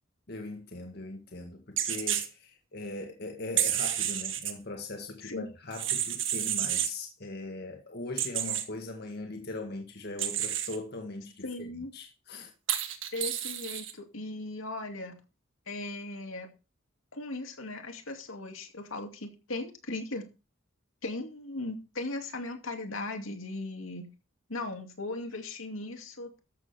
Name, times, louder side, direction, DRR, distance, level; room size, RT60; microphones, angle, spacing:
voice 1, 0.3-11.7 11.9-12.5, left 2 dB, 55° left, 1.8 m, -40 dB
sound 1, 1.8-2.3 3.6-4.5 5.7-6.9 8.2-8.6 10.2-10.8 12.7-13.9, right 11 dB, 65° right, 1.7 m, -30 dB
voice 2, 11.4-11.9 13.1-15.2 15.7-16.5 17.1-20.2 21.0-24.1 24.5-26.4, left 2 dB, 80° left, 2.5 m, -38 dB
13.5 x 7.5 x 4.4 m
head